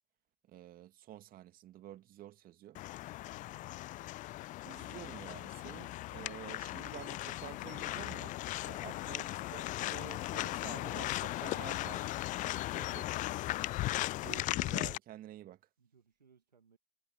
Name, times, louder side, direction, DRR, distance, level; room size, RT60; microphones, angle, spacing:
voice 1, 0.5-2.8 4.6-8.4 8.7-12.1 12.8-13.1 14.2-15.6, right 13 dB, 45° right, 2.2 m, -50 dB
sound 1, 2.7-15.0, left 17 dB, 40° left, 0.4 m, -37 dB
voice 2, 3.3-3.7 8.9-9.2 12.5-13.3 15.8-16.8, right 6 dB, 85° right, 1.6 m, -64 dB
figure-of-eight pair, 70°, 21 cm